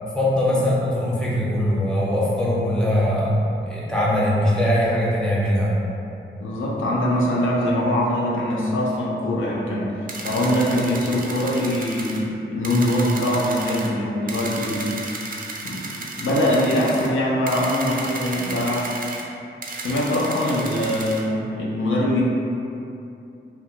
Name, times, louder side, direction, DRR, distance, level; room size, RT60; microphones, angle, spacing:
voice 1, 0.1-5.7, left 1 dB, 5° left, -7 dB, 0.7 m, -21 dB
voice 2, 6.4-15.0 15.6-15.8 16.2-18.9 19.8-22.2, left 1 dB, 75° left, -5 dB, 0.5 m, -23 dB
sound 1, 10.1-12.2 12.6-13.9 14.3-17.1 17.5-19.2 19.6-21.2, right 3 dB, 45° right, 0.4 m, -33 dB
2.8 x 2.3 x 2.8 m, 2.7 s
cardioid pair, 65°, 20 cm